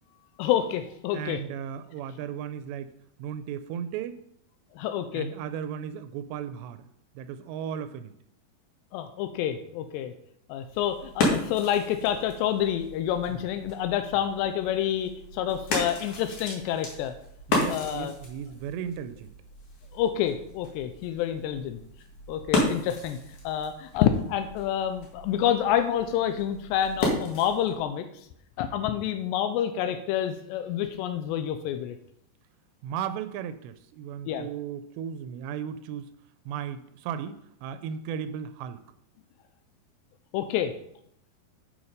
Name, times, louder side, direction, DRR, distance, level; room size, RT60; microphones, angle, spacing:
voice 1, 0.4-1.4 4.8-5.3 8.9-10.1 10.5-17.1 17.7-18.1 19.9-21.8 22.3-23.2 23.4-28.1 28.6-32.0 34.3-34.5 40.3-40.7, left 10 dB, 90° left, 8 dB, 2.8 m, -28 dB
voice 2, 1.1-2.9 3.2-4.2 5.1-6.8 7.2-8.1 13.3-13.4 17.5-19.3 32.8-36.1 36.5-38.8, right 8 dB, 90° right, 10 dB, 2.8 m, -35 dB
sound 1, 10.6-27.8, left 2 dB, 55° left, 3.0 m, -34 dB
8.4 x 7.1 x 5.1 m, 0.73 s
omnidirectional pair, 4.9 m